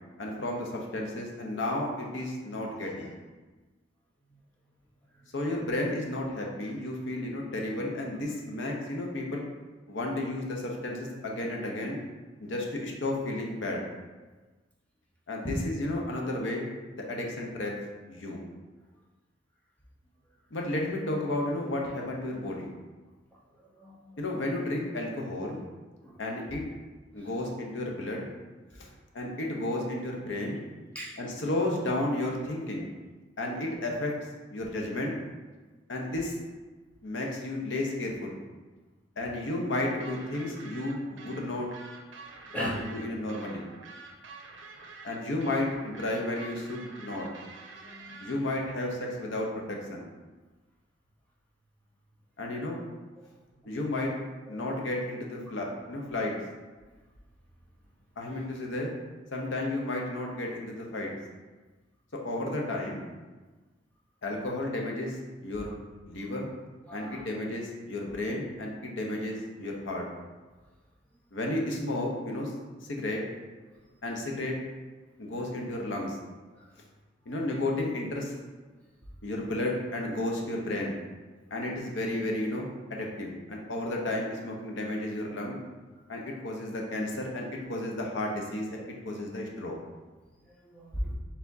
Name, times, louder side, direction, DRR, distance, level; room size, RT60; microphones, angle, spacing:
voice 1, 0.2-3.1 5.3-9.5 9.9-12.0 12.4-13.8 15.3-16.7 16.9-17.7 18.1-18.4 20.5-22.7 24.2-25.6 26.2-26.6 27.1-28.3 28.8-28.9 29.1-30.6 31.2-32.9 33.4-34.1 34.5-35.1 35.9-36.4 37.0-38.4 39.2-41.7 42.6-43.6 45.0-47.3 48.2-50.0 52.4-52.8 53.7-54.1 54.5-56.4 58.2-58.9 59.3-61.1 62.1-63.1 64.2-65.7 66.0-66.5 66.9-70.1 71.3-72.5 72.9-73.2 74.0-74.6 75.2-76.2 77.3-78.3 79.2-81.0 81.5-85.6 86.1-89.8, left 1 dB, 70° left, 0 dB, 0.7 m, -32 dB
voice 2, 23.6-24.0 26.0-26.2 27.2-27.3 28.9-29.0 30.9-31.2 42.5-42.8 47.7-48.2 54.5-54.6 66.9-67.2 76.5-76.7 77.3-77.4 90.4-91.1, equal, 10° left, -5 dB, 0.8 m, -37 dB
sound 1, 40.0-48.4, right 4 dB, 75° right, 0.6 m, -47 dB
4.5 x 3.5 x 2.7 m, 1.3 s
head